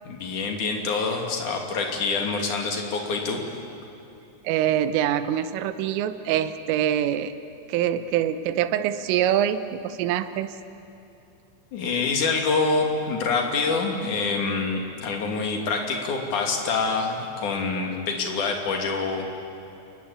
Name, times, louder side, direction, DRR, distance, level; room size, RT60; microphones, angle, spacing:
voice 1, 0.0-3.4 11.7-19.4, left 4 dB, 45° left, 2 dB, 3.4 m, -26 dB
voice 2, 4.5-7.3 7.7-10.5, right 10 dB, 80° right, 11 dB, 3.5 m, -24 dB
29.0 x 22.0 x 8.6 m, 2.9 s
omnidirectional pair, 5.9 m